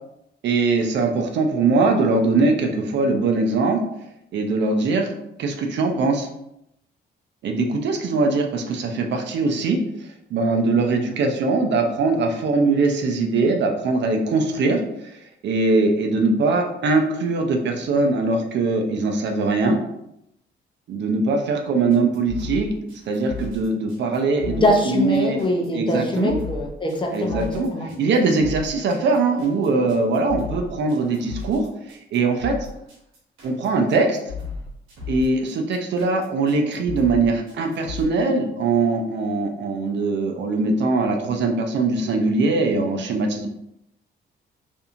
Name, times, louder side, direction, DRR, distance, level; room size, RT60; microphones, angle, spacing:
voice 1, 0.4-3.8 4.3-5.1 5.4-6.3 7.4-19.8 20.9-22.7 23.1-25.4 25.7-26.4 27.1-32.6 33.4-34.2 35.1-43.5, right 3 dB, 65° right, 4 dB, 0.5 m, -21 dB
sound 1, 21.9-38.0, left 5 dB, 85° right, 0.9 m, -35 dB
voice 2, 24.4-27.9, left 1 dB, 25° left, 1 dB, 0.5 m, -23 dB
2.7 x 2.6 x 2.4 m, 0.80 s
cardioid pair, 90°, 20 cm